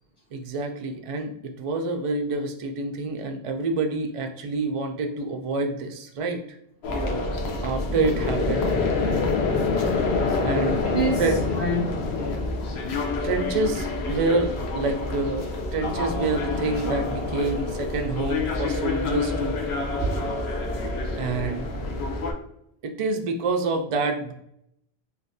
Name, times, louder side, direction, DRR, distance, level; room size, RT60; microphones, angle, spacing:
voice 1, 0.3-6.4 7.6-8.7 10.4-10.8 11.2-11.4 13.2-19.6 21.2-21.7 22.8-24.3, right 3 dB, 60° right, 3 dB, 0.3 m, -27 dB
sound 1, 6.8-22.3, left 3 dB, 80° left, 0.9 m, -27 dB
voice 2, 6.9-7.3 10.8-11.9 12.1-12.4 20.0-20.3, right 2 dB, 35° left, -8 dB, 1.3 m, -28 dB
3.3 x 2.6 x 2.6 m, 0.75 s
omnidirectional pair, 1.1 m